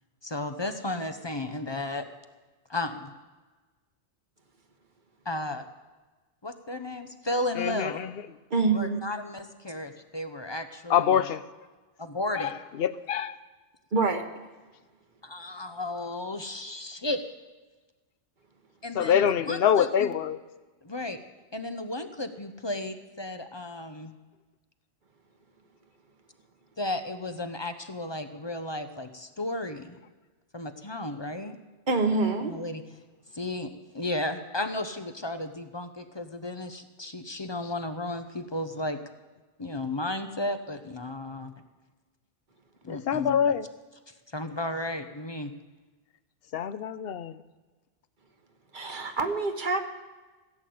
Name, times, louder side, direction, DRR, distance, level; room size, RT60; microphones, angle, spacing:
voice 1, 0.2-2.1 2.7-3.1 5.2-5.7 6.4-8.1 8.7-11.2 12.0-12.5 15.2-17.2 18.8-20.1 20.8-21.2 21.5-24.1 26.8-30.0 30.5-31.6 32.5-32.8 33.3-39.0 39.6-41.5 42.8-43.4 44.1-45.5, left 1 dB, 30° left, 8 dB, 0.7 m, -34 dB
voice 2, 7.6-7.9 10.9-11.4 12.8-13.3 19.0-20.4 42.9-43.6 46.5-47.3, left 8 dB, 65° left, 14 dB, 0.8 m, -24 dB
voice 3, 8.5-9.0 13.9-14.3 31.9-32.5 48.7-49.8, right 3 dB, 45° right, 6 dB, 1.3 m, -26 dB
15.5 x 8.4 x 7.8 m, 1.3 s
omnidirectional pair, 1.2 m